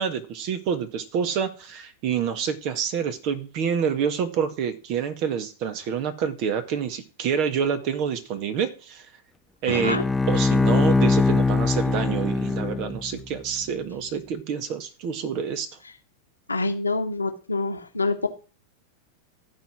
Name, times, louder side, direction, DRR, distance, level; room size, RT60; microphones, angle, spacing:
voice 1, 0.0-9.1 9.6-10.0 10.3-15.7, right 7 dB, 40° right, 1.7 m, -27 dB
voice 2, 9.7-10.0 16.5-18.3, left 3 dB, 80° left, 1.4 m, -26 dB
Bowed string instrument, 9.7-13.2, left 3 dB, 10° left, 0.4 m, -22 dB
13.5 x 5.0 x 6.1 m
figure-of-eight pair, 90°, 0 cm